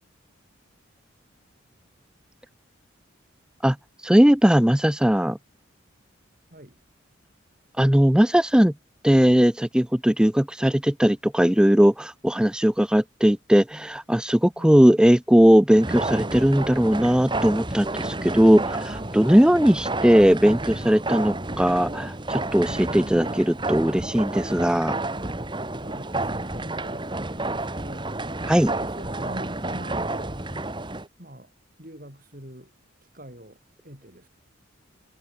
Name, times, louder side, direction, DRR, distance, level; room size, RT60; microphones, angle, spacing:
voice 1, 4.0-5.4 7.8-8.7 9.0-25.0 28.5-28.7, equal, 5° right, 0.4 m, -19 dB
sound 1, 15.8-31.1, right 2 dB, 25° right, 1.9 m, -30 dB
voice 2, 25.8-27.1 27.4-28.1 28.7-30.4 31.2-31.5 31.8-32.7 33.1-34.3, right 1 dB, 40° right, 7.5 m, -43 dB
head